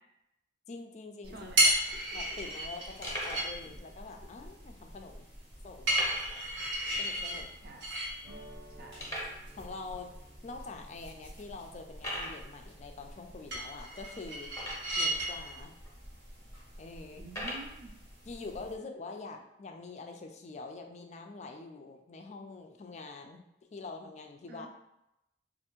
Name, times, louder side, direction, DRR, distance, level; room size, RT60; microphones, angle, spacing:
voice 1, 0.7-1.5 1.9-5.3 5.6-5.9 7.0-7.5 9.6-10.1 10.4-14.5 15.0-15.7 16.8-17.2 18.3-23.4 23.7-24.7, left 3 dB, 40° left, 4 dB, 0.4 m, -45 dB
sound 1, 1.2-18.7, right 1 dB, 85° right, 1.3 m, -36 dB
voice 2, 1.3-1.6 7.6-7.8 8.8-9.1 17.2-17.9 24.5-24.7, right 2 dB, 60° right, 2 dB, 0.5 m, -48 dB
sound 2, 2.0-2.1 2.5-2.6 3.0-3.5 4.3-4.4 5.9-6.5 6.7-6.8 7.3-7.4 8.0-8.1 9.0-9.4 10.2-10.3 10.9-11.0 11.9-12.4 14.5-15.1 15.8-15.9 17.2-17.7, equal, 20° left, 0.9 m, -38 dB
sound 3, 8.2-13.1, right 1 dB, 30° right, 0.8 m, -57 dB
3.3 x 2.5 x 3.0 m, 0.85 s
head